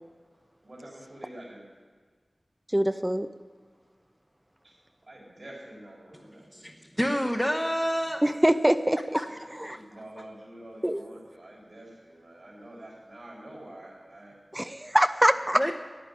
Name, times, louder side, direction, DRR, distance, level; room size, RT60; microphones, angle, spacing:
voice 1, 0.6-1.7 4.6-4.8 5.0-6.9 9.2-14.4, right 1 dB, 60° right, -4 dB, 3.9 m, -47 dB
voice 2, 2.7-3.3 8.2-9.0 9.6-9.8 10.8-11.0 14.5-15.6, right 1 dB, 15° right, 10 dB, 0.5 m, -23 dB
voice 3, 6.5-8.2 9.1-9.3 15.5-15.7, equal, 5° left, 1 dB, 0.9 m, -28 dB
11.0 x 8.8 x 9.9 m, 1.5 s
wide cardioid pair, 60°, 0 cm